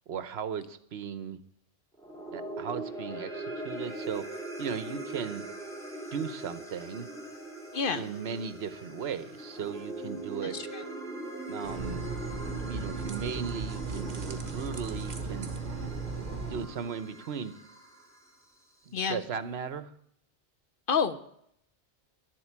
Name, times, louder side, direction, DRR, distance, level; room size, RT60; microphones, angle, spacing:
voice 1, 0.1-1.4 2.3-5.4 6.1-7.1 7.9-10.6 11.5-12.1 12.4-15.5 16.5-17.5 18.9-19.9, right 7 dB, 65° right, 14 dB, 1.0 m, -37 dB
sound 1, 1.9-18.4, right 2 dB, 5° left, 2.3 m, -41 dB
voice 2, 7.7-8.0 10.4-10.8 18.9-19.2 20.9-21.2, left 6 dB, 55° left, 11 dB, 0.8 m, -29 dB
sound 2, 11.6-16.6, right 4 dB, 40° right, 1.2 m, -36 dB
11.0 x 7.8 x 8.5 m, 0.71 s
omnidirectional pair, 1.2 m